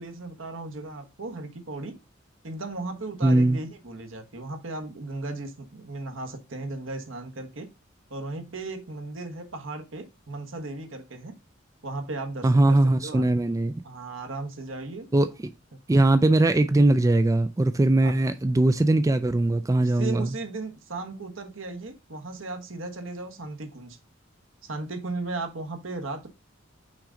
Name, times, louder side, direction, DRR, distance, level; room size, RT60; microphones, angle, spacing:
voice 1, 0.0-2.0 2.4-7.7 8.1-11.3 11.8-13.3 13.8-15.1 15.7-15.8 18.0-18.2 19.8-24.0 24.6-26.3, right 2 dB, 70° right, 1.3 m, -36 dB
voice 2, 3.2-3.6 12.4-13.7 15.1-15.3 15.9-20.3, right 2 dB, 15° right, 0.4 m, -20 dB
6.0 x 3.8 x 5.0 m
head